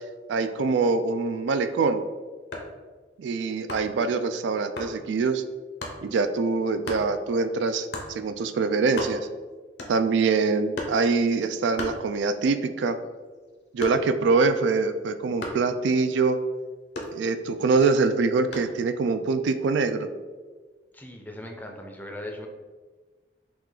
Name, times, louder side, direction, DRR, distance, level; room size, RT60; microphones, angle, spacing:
voice 1, 0.3-2.0 3.2-5.4 6.0-9.3 9.9-13.0 13.7-16.4 17.1-20.1, right 4 dB, 85° right, 9 dB, 0.3 m, -24 dB
sound 1, 2.4-2.8 3.7-4.0 4.8-5.0 5.8-6.0 6.8-7.1 7.9-8.2 8.6-8.7 8.8-9.4 9.8-10.2 10.7-11.1 11.8-12.5 12.9-14.3 15.4-15.7 16.9-17.6 18.5-18.8, left 1 dB, 70° left, 0.9 m, -35 dB
voice 2, 20.9-22.5, left 1 dB, 10° left, 2 dB, 0.5 m, -39 dB
5.9 x 2.4 x 3.7 m, 1.4 s
head